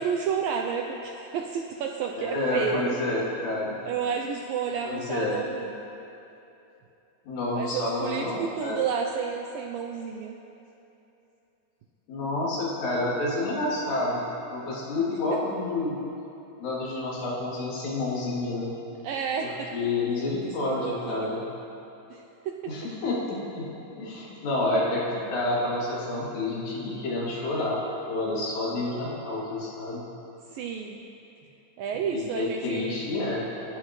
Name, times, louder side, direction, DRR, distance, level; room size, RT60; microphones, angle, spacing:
voice 1, 0.0-2.8 3.8-5.8 7.5-10.4 19.0-19.7 20.5-21.4 22.1-22.7 30.5-31.0 31.8-33.0 33.7-33.8, right 7 dB, 80° right, 2 dB, 2.1 m, -31 dB
voice 2, 2.1-3.8 4.8-5.4 7.3-8.8 12.1-16.0 16.6-18.8 19.4-21.4 22.7-23.7 24.0-27.8 28.1-30.1 32.1-33.7, left 2 dB, 80° left, -6 dB, 5.2 m, -29 dB
27.5 x 12.0 x 3.2 m, 2.8 s
omnidirectional pair, 4.8 m